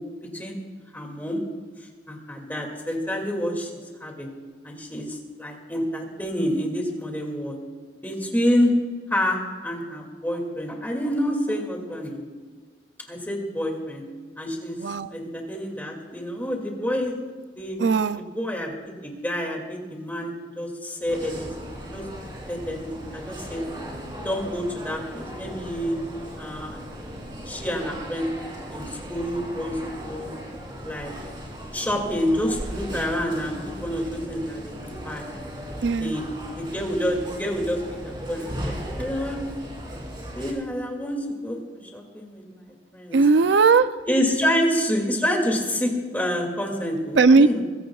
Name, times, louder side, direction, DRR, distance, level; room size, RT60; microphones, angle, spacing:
voice 1, 0.9-1.4 2.1-3.7 4.0-4.3 4.6-7.6 8.0-8.8 9.1-12.2 13.1-14.0 14.4-14.8 15.1-17.1 17.5-17.8 18.3-22.0 22.5-23.6 24.2-26.0 26.4-26.8 27.5-28.3 28.7-30.3 30.8-31.1 31.7-33.6 33.8-35.2 36.0-36.2 36.6-37.8 38.0-39.4 40.3-42.6 42.9-43.2 44.1-47.6, equal, 10° left, 2.4 m, -28 dB
voice 2, 14.8-15.1 17.8-18.2 35.8-36.2 43.1-43.9 47.2-47.5, right 4 dB, 90° right, 0.5 m, -17 dB
sound 1, 21.1-40.5, equal, 25° right, 3.2 m, -37 dB
22.5 x 16.5 x 2.4 m
head